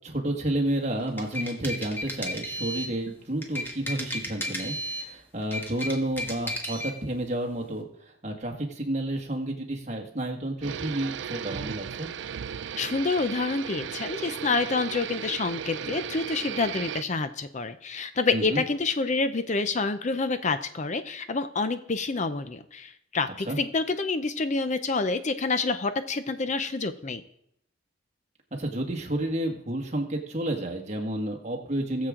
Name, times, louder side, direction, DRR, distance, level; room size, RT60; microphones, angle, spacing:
voice 1, 0.0-12.1 18.3-18.6 23.5-23.6 28.5-32.1, right 1 dB, 35° right, 2 dB, 1.8 m, -30 dB
sound 1, 1.0-3.0 3.4-5.1 5.4-7.0, left 1 dB, 10° left, 1.5 m, -34 dB
sound 2, 10.6-17.0, right 8 dB, 60° right, 0.4 m, -35 dB
voice 2, 12.8-27.2, left 3 dB, 35° left, 10 dB, 0.6 m, -28 dB
19.5 x 7.4 x 3.8 m, 0.72 s
head